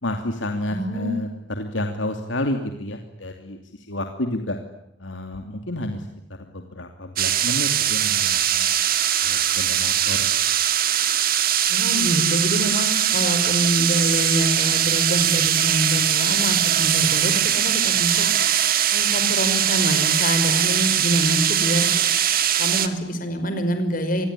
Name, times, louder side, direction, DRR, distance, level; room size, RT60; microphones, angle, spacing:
voice 1, 0.0-4.6 5.0-6.1 6.4-8.7 9.2-10.6, left 1 dB, 85° left, 5 dB, 2.8 m, -30 dB
voice 2, 0.7-1.2 11.7-18.3 18.9-21.9 22.6-24.3, equal, 45° left, 8 dB, 5.3 m, -25 dB
sound 1, 7.2-22.9, right 10 dB, 50° right, 2.1 m, -21 dB
27.0 x 22.0 x 9.9 m, 0.84 s
head